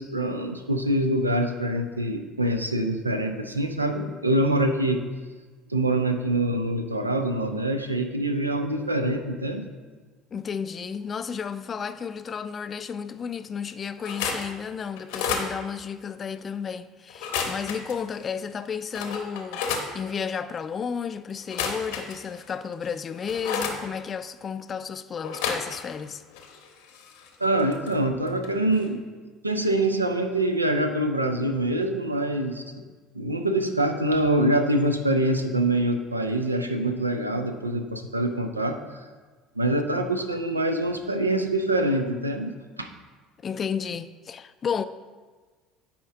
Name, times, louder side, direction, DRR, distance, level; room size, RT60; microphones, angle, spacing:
voice 1, 0.0-5.0 5.7-9.7 27.4-29.0 29.4-32.6 33.1-38.8 39.6-42.9, right 1 dB, 85° right, 0.5 m, -25 dB
voice 2, 10.3-19.6 19.9-26.2 43.4-44.8, left 6 dB, 35° left, 0.3 m, -32 dB
sound 1, 14.0-14.5 15.0-15.5 17.1-18.0 18.5-18.6 18.9-19.9 21.4-22.4 22.8-23.8 25.2-26.1 26.3-27.9 28.3-28.5 28.8-28.9, left 6 dB, 60° left, 0.8 m, -31 dB
9.6 x 4.4 x 3.6 m
figure-of-eight pair, 60°, 0 cm